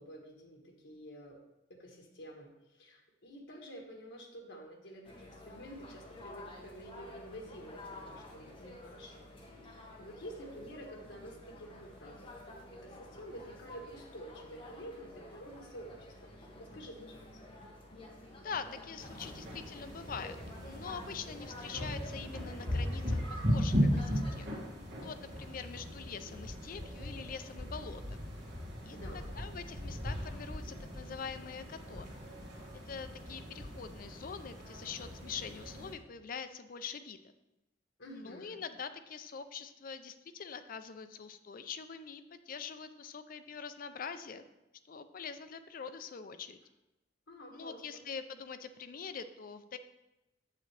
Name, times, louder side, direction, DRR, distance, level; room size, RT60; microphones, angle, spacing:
voice 1, 0.0-1.4 1.7-9.3 9.6-17.4 28.9-29.4 38.0-38.6 47.3-48.0, equal, 85° left, 1 dB, 1.2 m, -49 dB
sound 1, 5.0-24.5, left 1 dB, 30° left, 1.3 m, -51 dB
voice 2, 18.3-24.5 25.0-28.2 28.8-29.0 29.4-32.2 32.9-37.2 38.1-44.5 44.8-46.6 47.5-49.8, left 6 dB, 50° left, 10 dB, 0.5 m, -44 dB
sound 2, 19.0-35.9, equal, 65° right, 2.3 m, -37 dB
7.5 x 7.4 x 3.3 m, 0.98 s
head